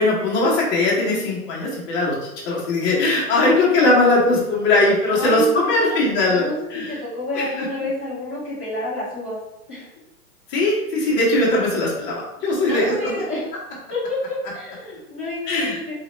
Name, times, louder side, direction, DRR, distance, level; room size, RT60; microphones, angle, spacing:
voice 1, 0.0-2.1 2.4-6.9 7.3-7.6 10.5-13.1 15.5-15.9, left 2 dB, 25° left, -5 dB, 1.2 m, -20 dB
voice 2, 5.1-6.0 6.3-9.4 9.7-9.9 12.7-13.5 13.9-15.9, left 2 dB, 10° right, -13 dB, 0.3 m, -29 dB
4.0 x 2.8 x 3.2 m, 0.88 s
hypercardioid pair, 145°, 46 cm